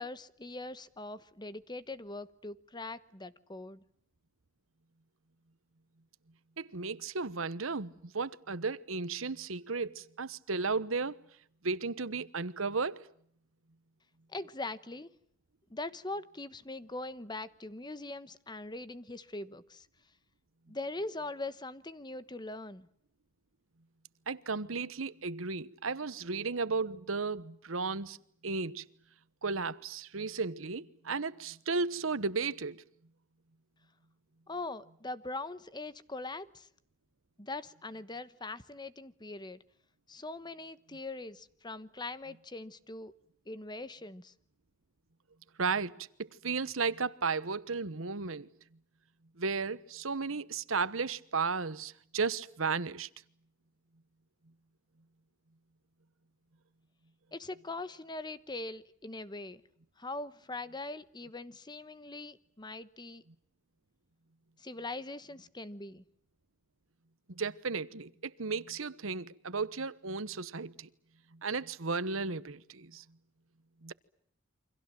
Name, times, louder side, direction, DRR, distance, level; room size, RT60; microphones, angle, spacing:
voice 1, 0.0-3.8 14.3-15.1 15.7-19.9 20.7-22.9 34.5-36.7 37.4-39.6 40.1-43.1 43.5-44.3 57.3-59.6 60.0-63.2 64.6-66.0, left 2 dB, 20° left, 1.1 m, -42 dB
voice 2, 6.6-11.2 11.6-13.1 24.3-28.2 28.4-28.9 29.4-32.8 45.6-46.1 46.4-48.5 49.4-53.1 67.3-70.9 71.3-73.0 73.8-73.9, right 4 dB, 85° right, 1.2 m, -34 dB
29.0 x 25.5 x 7.6 m
head